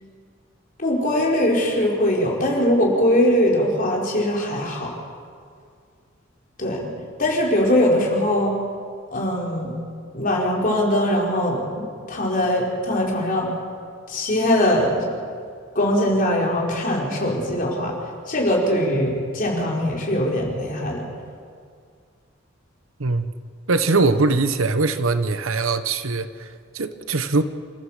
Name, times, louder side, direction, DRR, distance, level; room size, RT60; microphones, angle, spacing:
voice 1, 0.8-4.9 6.6-6.9 7.2-8.6 9.1-9.7 10.1-11.6 12.1-13.5 14.1-15.1 15.7-17.9 18.3-21.0, left 1 dB, 40° left, -2 dB, 4.6 m, -21 dB
voice 2, 23.7-27.4, right 3 dB, 85° right, 11 dB, 1.1 m, -22 dB
27.5 x 14.5 x 7.4 m, 2.1 s
head